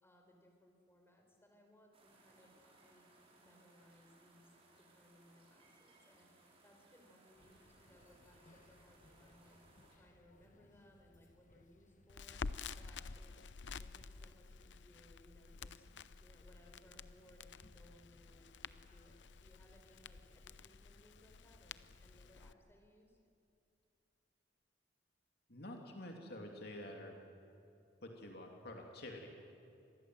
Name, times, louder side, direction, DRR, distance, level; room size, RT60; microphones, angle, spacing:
voice 1, 0.0-3.1 3.3-9.6 10.0-12.4 12.8-15.9 16.2-23.2, left 1 dB, 15° left, 2 dB, 4.3 m, -66 dB
sound 1, 1.9-10.0, right 2 dB, 35° right, 4.7 m, -67 dB
sound 2, 7.3-22.5, left 1 dB, 45° left, 1.2 m, -67 dB
Crackle, 12.1-22.5, left 5 dB, 90° left, 0.7 m, -50 dB
voice 2, 25.5-27.2 28.0-29.3, left 1 dB, 65° left, 2 dB, 2.9 m, -48 dB
26.5 x 20.5 x 7.8 m, 2.6 s
head